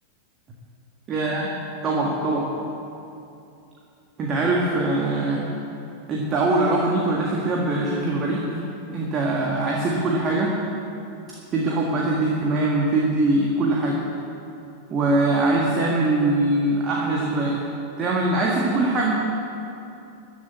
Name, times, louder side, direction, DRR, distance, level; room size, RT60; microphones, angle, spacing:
voice 1, 1.1-1.5 1.8-2.5 4.2-5.5 6.1-8.6 8.9-10.5 11.5-14.0 14.9-17.6 18.0-19.1, right 2 dB, 30° right, -2 dB, 1.7 m, -22 dB
13.5 x 7.6 x 8.5 m, 2.7 s
figure-of-eight pair, 90°, 0 cm